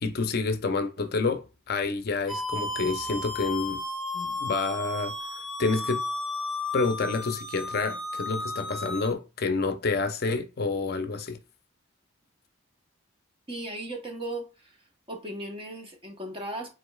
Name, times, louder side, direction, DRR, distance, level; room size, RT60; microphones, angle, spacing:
voice 1, 0.0-3.8 4.1-5.1 5.6-6.0 6.7-11.4, left 3 dB, 45° left, 0.5 m, -28 dB
sound 1, 2.3-9.1, left 2 dB, ahead, 1.0 m, -33 dB
voice 2, 13.5-14.8 15.1-16.7, right 1 dB, 25° right, 0.9 m, -37 dB
5.0 x 3.8 x 2.3 m
head